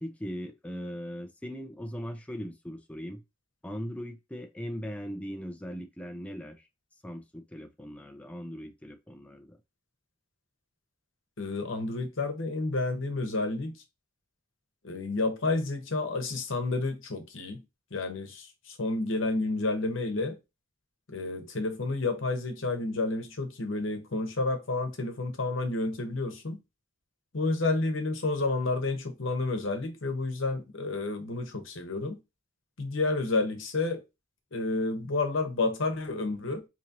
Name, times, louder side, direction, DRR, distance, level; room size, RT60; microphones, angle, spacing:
voice 1, 0.0-3.2 3.6-6.7 7.0-9.6, equal, 5° left, 0.5 m, -39 dB
voice 2, 11.4-13.8 14.8-17.6 17.9-20.4 21.1-26.6 27.3-32.2 32.8-34.0 34.5-36.7, left 3 dB, 70° left, 1.0 m, -30 dB
3.8 x 3.0 x 2.8 m
head